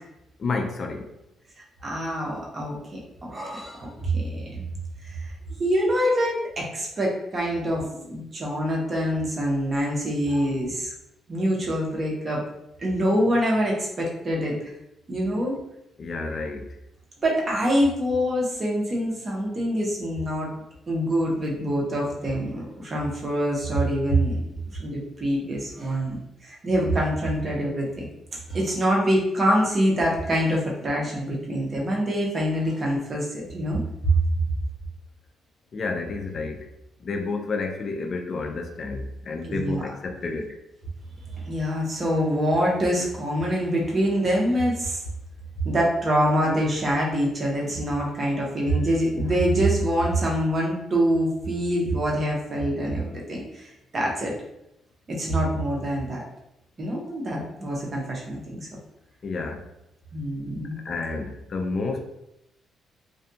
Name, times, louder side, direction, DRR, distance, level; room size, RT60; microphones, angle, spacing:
voice 1, 0.4-1.1 16.0-16.7 35.7-36.7 37.0-40.6 59.2-59.7 60.8-62.0, left 3 dB, 50° left, 4 dB, 0.3 m, -30 dB
voice 2, 1.8-4.6 5.0-5.3 5.6-10.9 11.3-12.4 12.8-14.6 15.1-15.6 17.2-20.5 20.9-24.4 24.8-28.1 28.5-33.8 39.4-39.9 41.3-45.0 45.6-54.3 55.1-56.2 56.8-58.7 60.1-60.8, equal, 35° right, -2 dB, 0.8 m, -25 dB
2.5 x 2.2 x 2.6 m, 0.84 s
cardioid pair, 90°, 0 cm